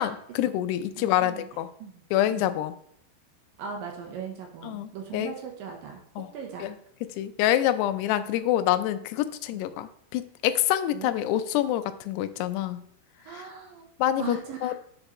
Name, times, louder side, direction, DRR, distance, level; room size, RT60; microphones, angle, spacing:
voice 1, 0.0-1.7 2.1-2.7 4.6-5.3 6.2-6.3 6.6-6.7 7.1-12.8 13.3-13.5 14.0-14.7, left 12 dB, 80° left, 12 dB, 2.6 m, -26 dB
voice 2, 1.0-1.5 1.8-2.0 2.3-2.5 3.6-6.0 6.3-6.7 9.6-9.8 10.9-11.1 13.2-13.9 14.2-14.7, right 7 dB, 70° right, 2 dB, 2.3 m, -39 dB
8.2 x 6.7 x 3.0 m, 0.69 s
omnidirectional pair, 4.9 m